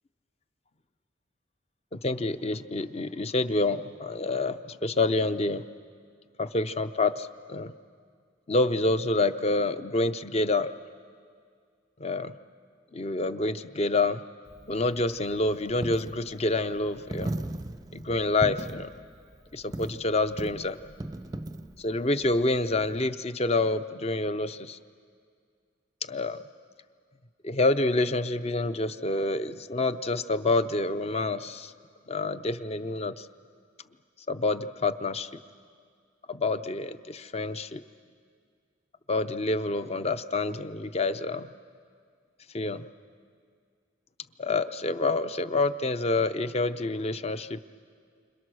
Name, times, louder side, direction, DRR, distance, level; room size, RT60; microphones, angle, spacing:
voice 1, 1.9-5.6 6.4-7.7 8.5-10.7 12.0-12.4 12.9-14.2 14.7-17.3 17.9-18.9 19.5-20.8 21.8-24.8 26.1-26.4 27.4-31.7 32.1-33.3 34.3-35.3 36.3-37.8 39.1-41.5 42.5-42.9 44.4-47.6, left 2 dB, 35° left, 11 dB, 0.6 m, -27 dB
Coin (dropping), 14.5-23.0, right 1 dB, 20° right, 0.5 m, -39 dB
29.5 x 26.5 x 6.3 m, 2.1 s
head